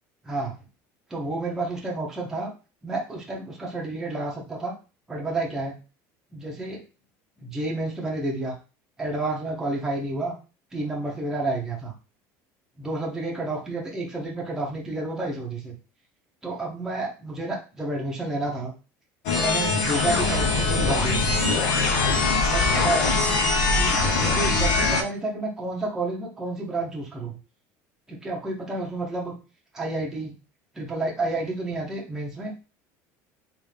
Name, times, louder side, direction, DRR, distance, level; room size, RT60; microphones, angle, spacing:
voice 1, 1.1-2.5 2.8-4.7 5.1-5.8 6.3-6.8 7.4-8.5 9.0-10.3 10.7-11.9 12.8-15.7 16.4-18.7 19.3-21.4 22.4-23.2 23.7-27.4 28.1-29.3 29.7-30.4 30.7-32.5, right 2 dB, 5° right, -3 dB, 0.8 m, -30 dB
sound 1, 19.3-25.0, left 3 dB, 70° left, 0.9 m, -22 dB
3.6 x 3.2 x 3.3 m, 0.33 s
cardioid pair, 175°, 7 cm